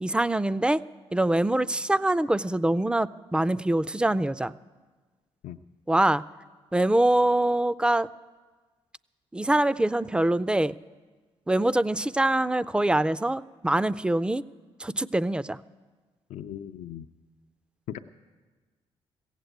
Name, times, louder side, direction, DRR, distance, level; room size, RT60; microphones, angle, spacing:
voice 1, 0.0-0.8 1.1-4.5 5.9-6.2 6.7-8.1 9.3-10.8 11.5-14.4 14.8-15.6, right 1 dB, 10° right, 16 dB, 0.4 m, -24 dB
voice 2, 16.3-17.1 17.9-18.0, left 11 dB, 75° left, 7 dB, 0.4 m, -38 dB
16.0 x 8.2 x 7.9 m, 1.3 s
cardioid pair, 70°, 12 cm